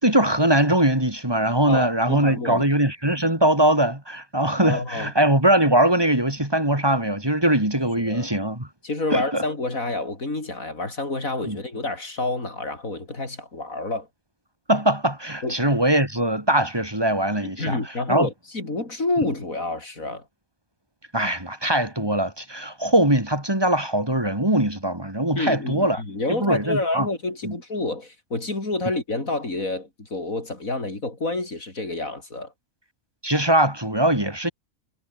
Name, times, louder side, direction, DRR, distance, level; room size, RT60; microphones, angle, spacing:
voice 1, 0.0-8.7 9.1-9.4 11.4-11.6 14.7-17.8 18.1-18.3 21.1-26.0 26.3-27.1 27.4-27.5 33.2-34.5, right 1 dB, 15° right, 4.4 m, -21 dB
voice 2, 1.7-2.7 4.6-5.1 7.8-8.3 8.8-14.1 15.4-15.7 17.4-20.2 25.4-32.5, left 2 dB, 85° left, 5.6 m, -28 dB
omnidirectional pair, 1.4 m